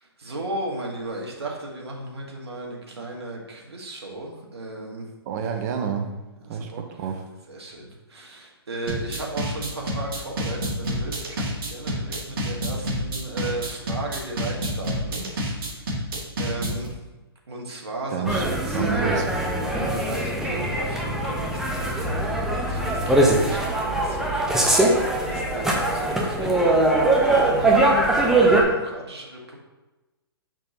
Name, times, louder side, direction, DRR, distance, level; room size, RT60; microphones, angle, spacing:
voice 1, 0.0-5.1 6.4-6.8 7.5-15.9 16.4-17.0 17.5-19.3 19.7-24.9 25.2-29.6, right 2 dB, 85° right, -1 dB, 1.7 m, -36 dB
voice 2, 5.3-6.1 6.5-7.2 18.1-18.5 18.7-19.3, right 7 dB, 45° right, 5 dB, 0.9 m, -28 dB
sound 1, 8.9-16.9, equal, 60° right, 2.1 m, -28 dB
sound 2, 18.2-28.6, right 2 dB, 5° right, 0.9 m, -21 dB
6.5 x 5.9 x 2.9 m, 1.1 s
hypercardioid pair, 130°, 13 cm